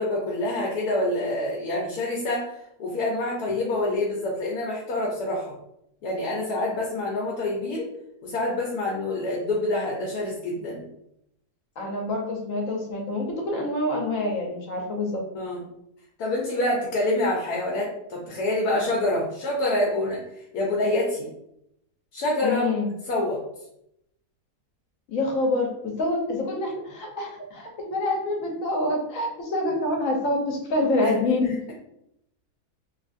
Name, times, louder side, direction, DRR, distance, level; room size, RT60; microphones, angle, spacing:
voice 1, 0.0-5.5 6.0-7.9 8.2-10.8 15.3-15.6 16.2-21.3 22.1-22.7 23.1-23.4 31.0-31.1, left 1 dB, 80° left, -3 dB, 1.2 m, -26 dB
voice 2, 11.8-15.2 22.4-22.9 25.1-31.6, left 2 dB, 60° left, 0 dB, 1.0 m, -26 dB
3.2 x 2.4 x 2.5 m, 0.77 s
omnidirectional pair, 1.6 m